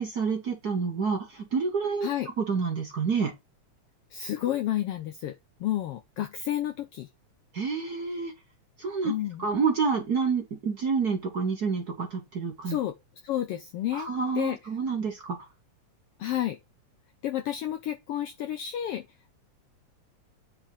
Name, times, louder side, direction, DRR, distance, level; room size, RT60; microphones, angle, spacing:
voice 1, 0.0-2.1 2.4-3.3 7.5-8.3 8.8-9.1 9.4-12.8 13.9-15.3, right 5 dB, 50° right, 1.2 m, -28 dB
voice 2, 4.1-5.3 5.6-7.1 9.0-9.5 12.6-12.9 13.2-14.1 14.3-14.6 16.2-16.6 17.2-19.0, left 12 dB, 90° left, 1.3 m, -30 dB
8.9 x 3.6 x 5.4 m
omnidirectional pair, 3.3 m